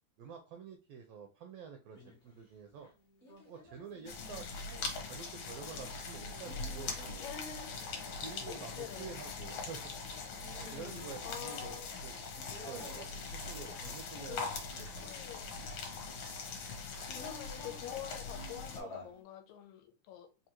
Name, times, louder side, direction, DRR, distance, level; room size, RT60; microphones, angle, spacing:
voice 1, 0.2-2.9 3.4-7.2 8.2-10.0 10.7-12.1 12.6-15.1, right 6 dB, 80° right, 1.4 m, -49 dB
sound 1, 1.9-2.4 2.7-14.7 15.0-16.0 16.9-19.2, equal, 50° left, 0.8 m, -54 dB
sound 2, 4.1-18.8, left 4 dB, 65° left, 1.9 m, -42 dB
voice 2, 7.2-7.8 8.5-9.2 11.2-11.9 14.3-14.5 14.8-15.6 17.0-20.3, left 10 dB, 85° left, 2.0 m, -47 dB
4.8 x 2.7 x 2.9 m
omnidirectional pair, 3.3 m